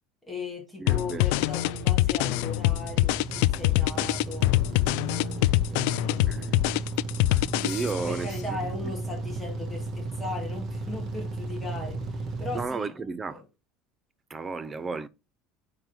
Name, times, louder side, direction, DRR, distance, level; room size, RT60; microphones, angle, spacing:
voice 1, 0.3-4.6 5.7-6.6 8.0-13.4, left 3 dB, 5° left, 2.3 m, -38 dB
voice 2, 0.8-1.3 6.2-6.5 7.6-8.6 12.5-13.4 14.3-15.1, right 4 dB, 15° right, 0.5 m, -33 dB
sound 1, 0.9-8.2, left 20 dB, 65° left, 0.3 m, -24 dB
sound 2, 1.0-12.7, right 2 dB, 30° right, 1.3 m, -35 dB
9.1 x 3.8 x 4.5 m
cardioid pair, 170°, 0 cm